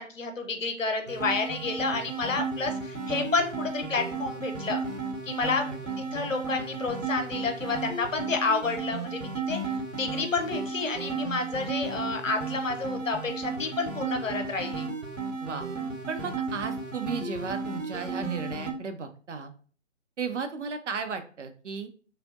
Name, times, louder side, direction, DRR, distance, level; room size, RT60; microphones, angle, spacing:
voice 1, 0.0-4.8 5.3-5.6 6.0-14.9, left 4 dB, 90° left, 5 dB, 0.7 m, -30 dB
sound 1, 1.1-18.7, right 4 dB, 90° right, 1.0 m, -34 dB
voice 2, 5.4-6.5 6.8-6.9 15.4-15.7 16.1-19.5 20.2-21.9, right 5 dB, 70° right, 7 dB, 0.7 m, -35 dB
3.3 x 2.7 x 2.4 m, 0.41 s
figure-of-eight pair, 145°, 38 cm